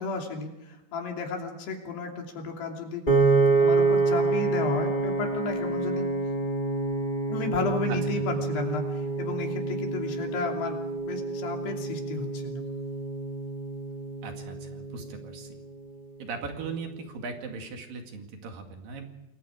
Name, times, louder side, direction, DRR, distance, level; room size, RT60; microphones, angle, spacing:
voice 1, 0.0-3.0 3.6-6.1 7.3-10.8 11.0-12.6, left 4 dB, 75° left, 2 dB, 5.1 m, -33 dB
Piano, 3.1-15.3, right 3 dB, 30° left, 0.8 m, -27 dB
voice 2, 14.2-15.5 16.2-19.1, right 5 dB, 60° right, 4 dB, 3.7 m, -38 dB
28.5 x 21.5 x 4.9 m, 0.95 s
omnidirectional pair, 4.8 m